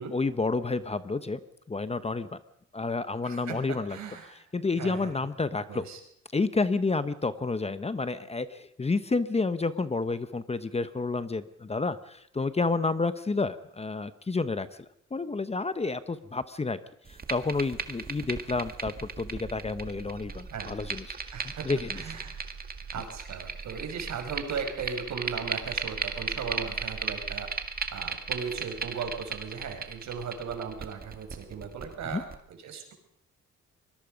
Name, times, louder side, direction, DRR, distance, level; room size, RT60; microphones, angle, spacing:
voice 1, 0.1-1.4 1.7-2.3 2.7-4.0 4.5-5.8 6.3-14.7 15.1-16.8 17.1-21.3 21.6-22.0 32.1-32.2, left 3 dB, 20° left, 12 dB, 1.0 m, -30 dB
voice 2, 3.2-4.4 4.8-5.1 5.7-6.0 20.5-20.7 21.3-21.7 21.9-22.4 22.9-27.5 27.9-32.9, right 6 dB, 65° right, 5 dB, 5.4 m, -37 dB
sound 1, 17.1-32.3, right 5 dB, 30° right, 2.0 m, -36 dB
24.5 x 21.0 x 5.3 m, 0.71 s
cardioid pair, 90°, 30 cm